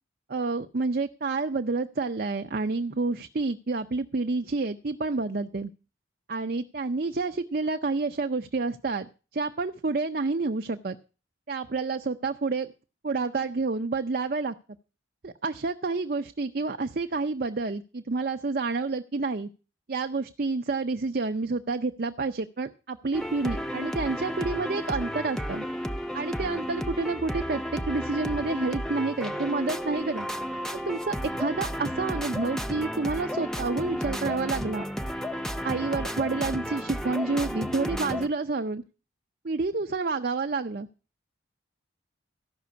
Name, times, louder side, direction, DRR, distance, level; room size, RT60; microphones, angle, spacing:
voice 1, 0.3-5.7 6.3-9.1 9.3-11.0 11.5-12.7 13.0-14.6 15.2-19.5 19.9-25.6 26.1-30.3 30.9-34.8 35.6-38.8 39.4-40.9, right 3 dB, 45° right, 7 dB, 0.6 m, -29 dB
sound 1, 23.1-38.3, equal, 5° left, 0.5 m, -33 dB
14.0 x 6.0 x 8.2 m, 0.34 s
head